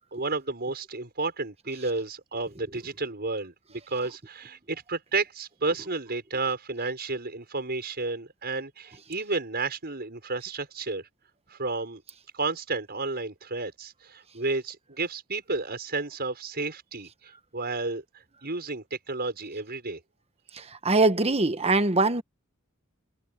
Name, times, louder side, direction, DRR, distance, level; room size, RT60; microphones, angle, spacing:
voice 1, 0.1-11.1 11.5-12.0 12.3-18.0 18.4-20.0, right 3 dB, 50° right, 6.4 m, -32 dB
voice 2, 20.5-22.2, right 2 dB, 30° right, 1.2 m, -23 dB
head